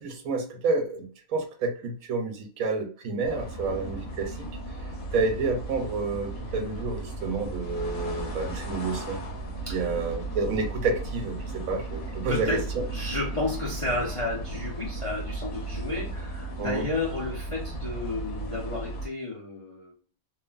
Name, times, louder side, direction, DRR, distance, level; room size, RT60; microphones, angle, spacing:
voice 1, 0.0-4.5 5.1-9.2 9.7-12.6 16.6-16.8, right 3 dB, 80° right, 4 dB, 1.1 m, -29 dB
sound 1, 3.2-19.1, right 2 dB, 85° left, 1.2 m, -35 dB
voice 2, 9.7-10.0 12.3-12.6 12.9-19.9, left 2 dB, 45° left, -4 dB, 0.4 m, -32 dB
3.1 x 2.1 x 2.3 m, 0.43 s
omnidirectional pair, 1.5 m